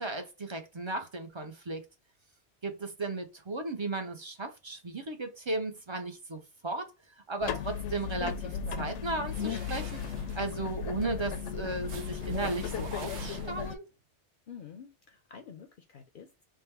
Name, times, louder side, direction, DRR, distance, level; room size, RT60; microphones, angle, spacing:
voice 1, 0.0-1.8 2.6-6.9 7.3-10.0 10.3-13.8, right 2 dB, 30° right, 0.6 m, -35 dB
sound 1, 7.4-13.8, left 7 dB, 85° left, 0.9 m, -35 dB
sound 2, 9.2-13.9, right 6 dB, 80° right, 1.0 m, -48 dB
voice 2, 14.5-16.4, left 7 dB, 60° left, 0.7 m, -49 dB
3.5 x 2.2 x 4.3 m
omnidirectional pair, 1.2 m